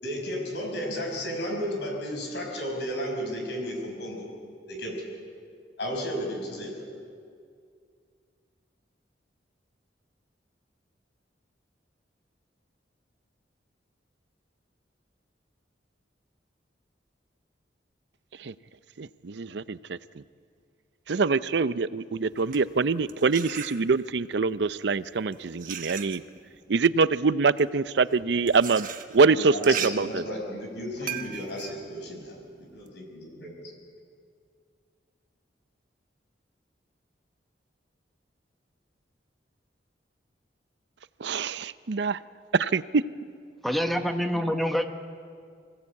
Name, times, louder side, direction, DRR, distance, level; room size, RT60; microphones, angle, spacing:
voice 1, 0.0-4.3 4.7-5.1 5.8-6.8 29.3-32.4 32.7-33.7, equal, 70° left, 1 dB, 5.7 m, -33 dB
voice 2, 19.0-20.2 21.1-26.2 26.7-28.9 29.1-30.2 41.2-42.2 42.5-43.0, right 4 dB, 65° right, 16 dB, 0.5 m, -24 dB
sound 1, 22.3-24.2 25.0-32.9, right 9 dB, 50° right, 1.1 m, -39 dB
voice 3, 43.6-44.8, equal, ahead, 6 dB, 1.0 m, -26 dB
25.0 x 16.5 x 8.4 m, 2.2 s
head